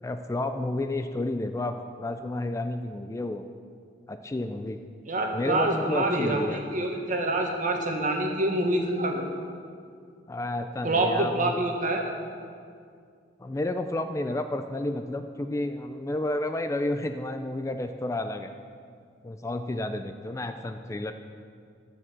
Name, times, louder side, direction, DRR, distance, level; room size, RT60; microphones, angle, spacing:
voice 1, 0.0-3.4 4.1-4.8 5.3-6.6 10.3-11.6 13.4-18.5 19.2-21.1, left 2 dB, 15° left, 8 dB, 0.3 m, -31 dB
voice 2, 5.1-9.2 10.8-12.1, right 2 dB, 45° right, 2 dB, 1.4 m, -26 dB
13.5 x 5.1 x 7.5 m, 2.2 s
head